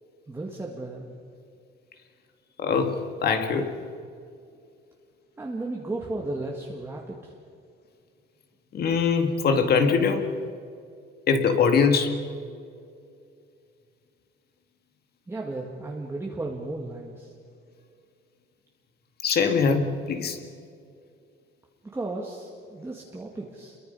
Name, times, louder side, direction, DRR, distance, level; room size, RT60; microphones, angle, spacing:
voice 1, 0.3-1.1 5.4-7.3 15.3-17.3 21.9-23.8, right 2 dB, 10° right, -2 dB, 1.8 m, -34 dB
voice 2, 2.6-3.7 8.7-10.3 11.3-12.2 19.2-20.4, left 5 dB, 50° left, 7 dB, 1.9 m, -22 dB
29.0 x 23.0 x 5.5 m, 2.4 s
cardioid pair, 175°, 21 cm